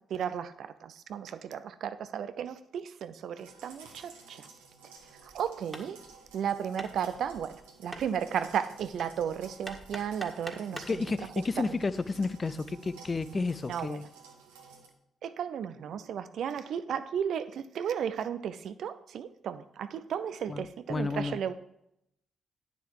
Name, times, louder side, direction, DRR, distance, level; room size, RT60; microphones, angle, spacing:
voice 1, 0.1-4.5 5.2-6.0 6.3-11.0 11.6-11.8 13.7-14.0 15.2-21.5, right 8 dB, 65° right, 12 dB, 0.5 m, -34 dB
sound 1, 3.4-14.9, right 4 dB, 85° right, 1.3 m, -54 dB
Hammer, 5.0-11.0, right 1 dB, 10° right, 1.8 m, -46 dB
voice 2, 10.9-14.0 20.5-21.4, left 3 dB, 35° left, 15 dB, 0.5 m, -31 dB
9.5 x 6.8 x 4.7 m, 0.79 s
hypercardioid pair, 40°, 0 cm